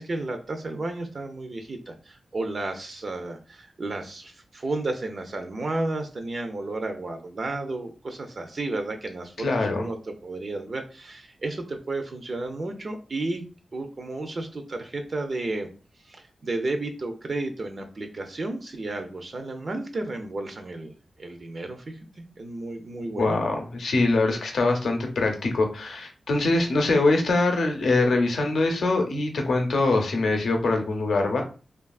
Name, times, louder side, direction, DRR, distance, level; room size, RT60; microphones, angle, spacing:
voice 1, 0.0-13.4 13.7-15.7 16.0-23.4, right 2 dB, 50° right, 5 dB, 0.4 m, -32 dB
voice 2, 9.4-9.9 23.2-31.4, left 2 dB, 80° left, 3 dB, 0.6 m, -23 dB
3.0 x 2.3 x 2.3 m, 0.36 s
wide cardioid pair, 90°, 0 cm